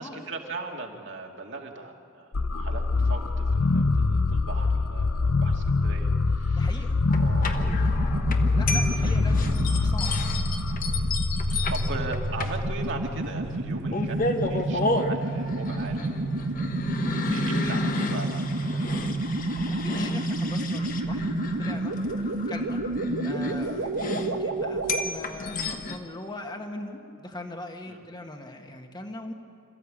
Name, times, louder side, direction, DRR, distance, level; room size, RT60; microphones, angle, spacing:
voice 1, 0.0-6.9 7.2-8.1 8.7-9.6 10.2-10.4 11.0-11.2 11.5-16.5 16.8-19.0 20.2-20.3 20.9-21.0 27.9-28.1, right 3 dB, 55° right, 1 dB, 2.4 m, -39 dB
sound 1, 2.3-13.2, left 3 dB, 85° left, 0.8 m, -25 dB
voice 2, 6.5-7.0 8.5-10.1 19.7-22.8 23.2-29.3, left 1 dB, 20° left, 4 dB, 1.6 m, -40 dB
sound 2, 7.1-26.0, left 2 dB, 40° left, 1.3 m, -32 dB
sound 3, 7.3-25.1, right 2 dB, 85° right, 1.3 m, -30 dB
27.0 x 14.5 x 8.6 m, 2.6 s
head